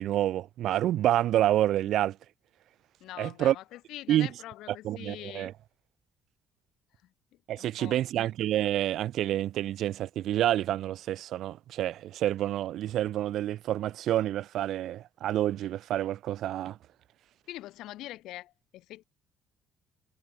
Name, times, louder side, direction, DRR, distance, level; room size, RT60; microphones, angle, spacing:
voice 1, 0.0-2.2 3.2-3.5 4.1-4.3 4.8-5.5 7.5-16.8, right 12 dB, 65° right, 0.4 m, -28 dB
voice 2, 3.0-5.5 7.0-8.0 17.5-19.0, left 15 dB, 80° left, 3.3 m, -44 dB
cardioid pair, 145°, 0 cm